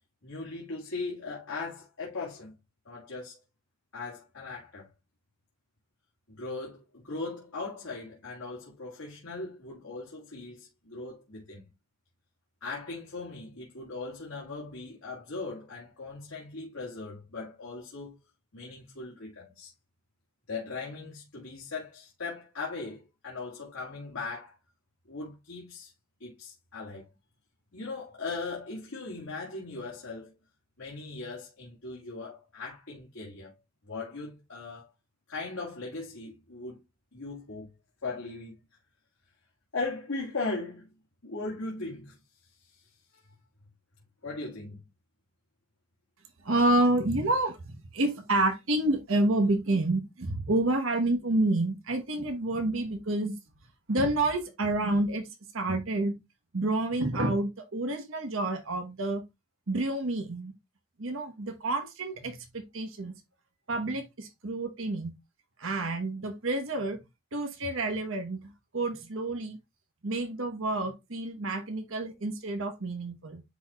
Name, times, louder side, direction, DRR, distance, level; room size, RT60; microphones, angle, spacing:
voice 1, 0.2-2.5 2.9-3.4 3.9-4.9 6.3-11.7 12.6-18.1 18.5-19.7 20.5-24.6 25.1-25.9 26.2-27.1 27.7-30.4 30.8-33.5 33.8-34.9 35.3-36.8 37.1-37.7 38.0-38.6 39.7-40.9 41.2-42.2 42.6-43.2 44.2-44.8, left 3 dB, 80° left, 2.0 m, -39 dB
voice 2, 46.4-53.4 53.9-55.3 55.5-56.2 56.5-59.2 59.7-60.5 61.0-63.1 63.7-65.1 65.6-67.0 67.3-69.6 70.0-73.4, right 2 dB, 65° right, 1.1 m, -29 dB
10.0 x 4.3 x 2.4 m
head